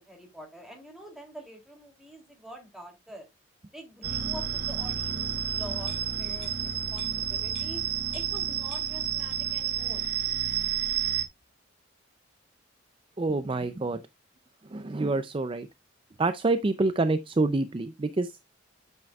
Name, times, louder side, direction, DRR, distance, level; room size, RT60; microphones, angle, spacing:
voice 1, 0.0-3.3 3.7-7.8 8.1-10.0, equal, ahead, 2.7 m, -46 dB
sound 1, 4.0-11.2, right 9 dB, 50° right, 1.1 m, -30 dB
sound 2, 5.9-8.5 8.7-9.7 10.0-10.1, left 5 dB, 30° left, 3.3 m, -51 dB
voice 2, 13.2-14.0 14.7-15.7 16.2-18.3, right 3 dB, 25° right, 0.4 m, -27 dB
9.3 x 7.7 x 2.3 m
head